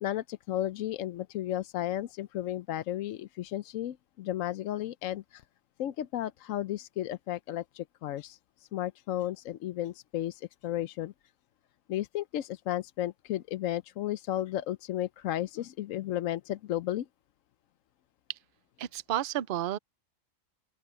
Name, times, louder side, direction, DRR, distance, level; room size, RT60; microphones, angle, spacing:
voice 1, 0.0-5.4 5.8-11.1 11.9-17.1, left 13 dB, 75° left, 1.0 m, -34 dB
voice 2, 18.8-19.8, right 12 dB, 55° right, 0.6 m, -31 dB
open air
omnidirectional pair, 1.4 m